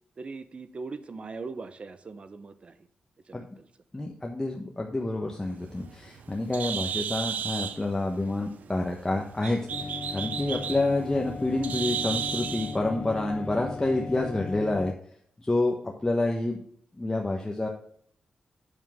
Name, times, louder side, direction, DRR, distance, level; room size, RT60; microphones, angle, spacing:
voice 1, 0.2-2.9 3.3-3.7, right 4 dB, 45° right, 12 dB, 0.8 m, -40 dB
voice 2, 3.9-9.7 10.1-14.9 15.4-16.6 17.0-17.7, left 2 dB, 20° left, 0 dB, 1.2 m, -28 dB
Bird, 5.5-12.8, right 8 dB, 85° right, 0.5 m, -34 dB
sound 1, 9.7-14.9, left 4 dB, 50° left, 0.4 m, -37 dB
8.3 x 7.1 x 3.7 m, 0.62 s
cardioid pair, 75°, 3 cm